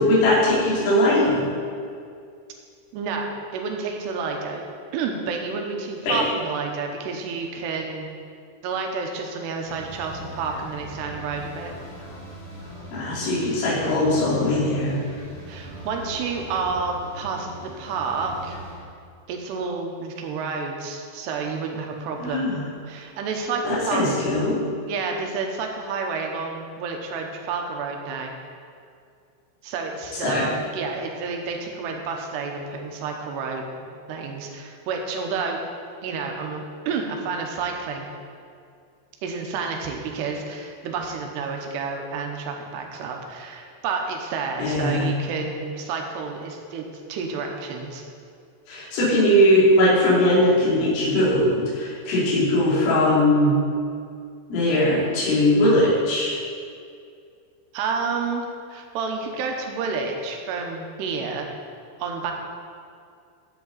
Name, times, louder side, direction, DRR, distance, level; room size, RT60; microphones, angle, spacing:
voice 1, 0.0-1.5 6.1-6.2 12.9-15.0 22.2-22.7 23.6-24.6 30.2-30.5 44.6-45.1 48.7-53.5 54.5-56.4, left 1 dB, 85° left, -9 dB, 5.5 m, -20 dB
voice 2, 2.9-4.7 4.9-8.1 8.6-11.7 15.5-18.6 19.3-22.5 22.9-24.3 24.9-28.3 29.6-35.6 36.0-38.0 39.2-48.0 57.7-61.5 62.0-62.3, right 4 dB, 75° right, 2 dB, 2.8 m, -30 dB
sound 1, 9.6-18.7, right 1 dB, 30° left, 1.3 m, -40 dB
13.0 x 8.3 x 4.1 m, 2.3 s
omnidirectional pair, 5.5 m